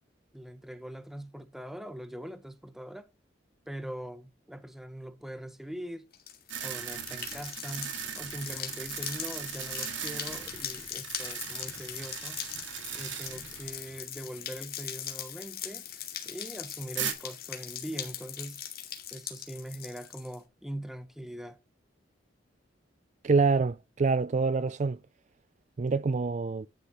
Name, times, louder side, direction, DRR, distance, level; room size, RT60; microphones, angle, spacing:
voice 1, 0.3-3.1 3.7-6.1 6.6-12.4 12.9-15.8 16.2-18.6 19.1-21.6, right 1 dB, ahead, 1.1 m, -42 dB
sound 1, 6.1-20.4, left 10 dB, 55° left, 2.4 m, -40 dB
sound 2, 6.5-14.0 14.3-14.4 17.0-17.1, right 8 dB, 75° right, 2.2 m, -38 dB
voice 2, 23.2-25.0 25.8-26.7, right 4 dB, 40° right, 0.4 m, -26 dB
11.5 x 6.7 x 3.0 m
head